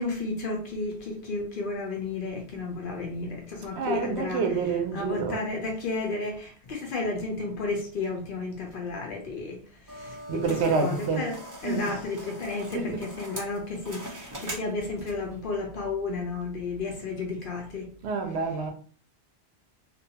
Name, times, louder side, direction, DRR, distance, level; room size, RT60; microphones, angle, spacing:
voice 1, 0.0-4.4 4.9-17.9, left 3 dB, 60° left, 0.6 m, -32 dB
voice 2, 3.8-5.5 10.3-11.3 11.6-11.9 12.6-13.1 18.0-18.7, right 4 dB, 70° right, 0.8 m, -28 dB
sound 1, 9.9-15.3, right 1 dB, 35° right, 0.3 m, -42 dB
2.4 x 2.2 x 2.7 m
omnidirectional pair, 1.2 m